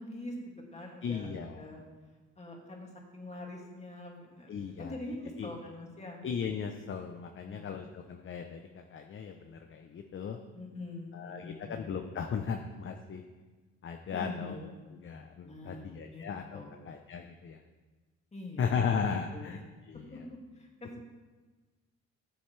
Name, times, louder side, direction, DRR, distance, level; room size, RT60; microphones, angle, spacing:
voice 1, 0.0-1.3 1.6-1.8 2.4-6.2 7.4-7.8 10.5-11.7 14.1-14.6 15.4-15.9 16.1-16.3 16.5-16.8 18.3-19.0 19.3-19.5 20.1-20.2 20.6-21.1, left 1 dB, 20° left, -1 dB, 2.3 m, -44 dB
voice 2, 1.0-1.7 4.5-5.0 5.4-5.5 6.2-10.4 11.1-13.2 13.8-17.6 18.6-19.6 19.9-20.2, left 6 dB, 40° left, 5 dB, 0.7 m, -36 dB
14.5 x 7.1 x 3.3 m, 1.3 s
cardioid pair, 90°, 30 cm